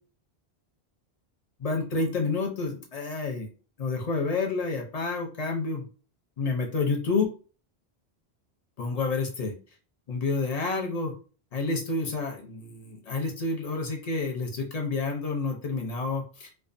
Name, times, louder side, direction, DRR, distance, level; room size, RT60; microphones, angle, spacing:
voice 1, 1.6-3.5 3.8-5.8 6.4-7.2 8.8-9.5 10.1-11.1 11.5-16.5, left 3 dB, 50° left, 1 dB, 0.5 m, -29 dB
2.3 x 2.2 x 2.5 m, 0.38 s
omnidirectional pair, 1.1 m